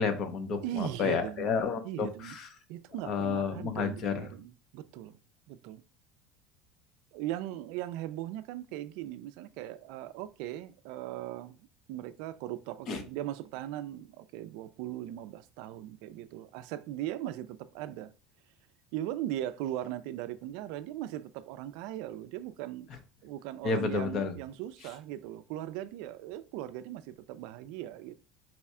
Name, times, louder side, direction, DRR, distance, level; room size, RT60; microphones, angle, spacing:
voice 1, 0.0-2.5 3.0-4.3 12.9-13.0 23.6-24.3, left 5 dB, 45° left, 0.7 m, -31 dB
voice 2, 0.6-1.5 1.8-2.4 2.7-5.2 5.5-5.8 7.1-11.6 11.9-18.1 18.9-22.9 23.2-28.2, right 13 dB, 70° right, 0.3 m, -39 dB
4.1 x 2.3 x 4.2 m
supercardioid pair, 125°, 0 cm